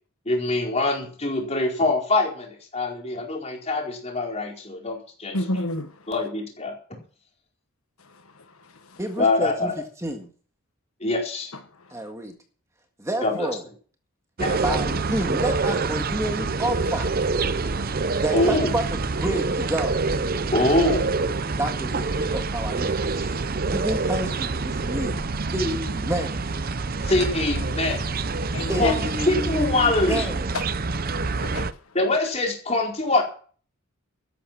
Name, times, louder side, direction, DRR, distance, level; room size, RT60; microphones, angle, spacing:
voice 1, 0.3-2.5 2.7-5.4 6.1-6.8 9.2-9.7 11.0-11.5 13.2-13.5 14.4-14.8 18.3-18.8 20.5-21.2 27.0-28.1 28.8-30.3 31.9-33.2, left 2 dB, 30° left, 4.5 m, -24 dB
voice 2, 5.3-5.9 8.1-8.2 8.6-9.0 28.5-29.0 30.5-30.6 31.3-31.7, left 2 dB, 75° left, 1.4 m, -29 dB
voice 3, 9.0-9.7 10.0-10.3 11.9-12.4 13.0-13.6 14.6-17.1 18.2-20.0 21.5-25.2 25.5-26.5 28.7-30.5, right 1 dB, 15° right, 1.7 m, -29 dB
sound 1, 14.4-31.7, right 3 dB, 40° right, 0.6 m, -26 dB
13.5 x 11.5 x 6.0 m
head